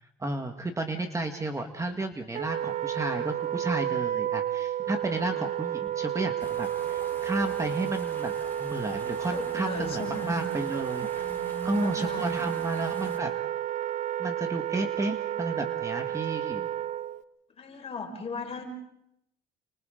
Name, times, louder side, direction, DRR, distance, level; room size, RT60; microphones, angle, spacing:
voice 1, 0.2-8.3 8.6-11.2 11.6-13.3 14.2-16.7, right 2 dB, 20° right, 5 dB, 1.8 m, -32 dB
Wind instrument woodwind instrument, 2.3-17.2, right 11 dB, 45° right, 0.7 m, -31 dB
sound 1, 6.4-13.2, left 3 dB, 10° left, 4.3 m, -47 dB
voice 2, 9.1-10.4 11.2-12.5 17.6-18.6, left 2 dB, 35° left, 2 dB, 5.2 m, -38 dB
29.5 x 25.0 x 3.9 m, 0.80 s
cardioid pair, 110°, 17 cm